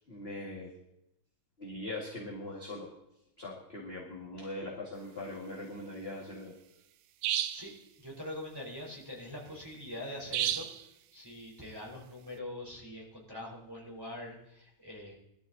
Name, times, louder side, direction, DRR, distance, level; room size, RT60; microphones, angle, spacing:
voice 1, 0.1-0.7 1.6-2.9 3.4-6.6, left 1 dB, 25° left, -4 dB, 1.9 m, -41 dB
sound 1, 7.2-7.7 10.3-10.8, right 12 dB, 90° right, 2.1 m, -31 dB
voice 2, 8.0-10.7 11.1-15.1, left 1 dB, 5° right, -4 dB, 3.9 m, -43 dB
19.0 x 13.0 x 4.1 m, 0.84 s
omnidirectional pair, 3.4 m